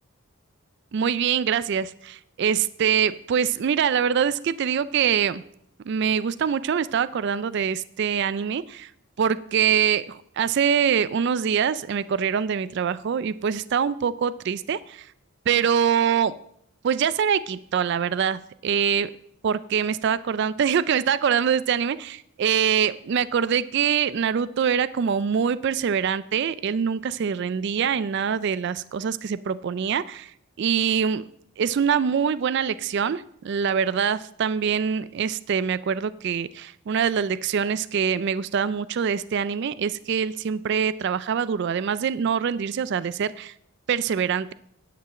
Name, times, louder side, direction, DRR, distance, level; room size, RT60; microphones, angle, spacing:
voice 1, 0.9-5.4 5.9-8.9 9.2-15.1 15.5-16.3 16.8-19.1 19.4-31.2 31.6-43.5 43.9-44.5, right 7 dB, 50° right, 16 dB, 0.3 m, -24 dB
10.5 x 6.0 x 7.5 m, 0.71 s
head